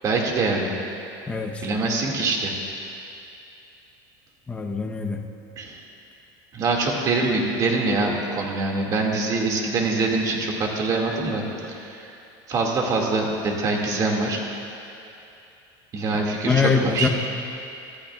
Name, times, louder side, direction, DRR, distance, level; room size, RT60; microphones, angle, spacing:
voice 1, 0.0-0.7 1.6-2.5 5.6-5.8 6.5-12.1 12.5-14.4 15.9-17.1, right 3 dB, 35° right, -1 dB, 2.2 m, -24 dB
voice 2, 1.3-1.6 4.5-5.2 16.1-17.1, left 5 dB, 10° left, 2 dB, 0.9 m, -24 dB
24.5 x 14.5 x 2.4 m, 2.7 s
cardioid pair, 145°, 11 cm